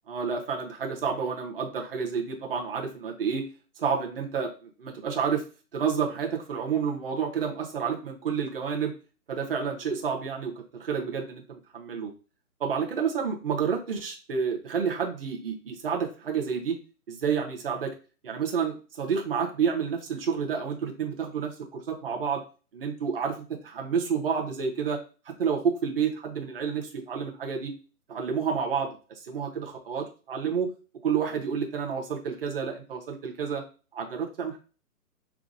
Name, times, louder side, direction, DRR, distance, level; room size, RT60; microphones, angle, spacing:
voice 1, 0.1-3.4 3.8-5.4 5.7-8.9 9.3-12.1 12.6-16.8 17.1-17.9 18.2-22.4 22.7-23.4 23.6-25.0 25.3-27.7 28.1-29.0 29.3-30.7 31.0-33.6 33.9-34.6, right 6 dB, 40° right, 2 dB, 1.0 m, -29 dB
5.8 x 2.2 x 2.6 m, 0.35 s
hypercardioid pair, 160°, 46 cm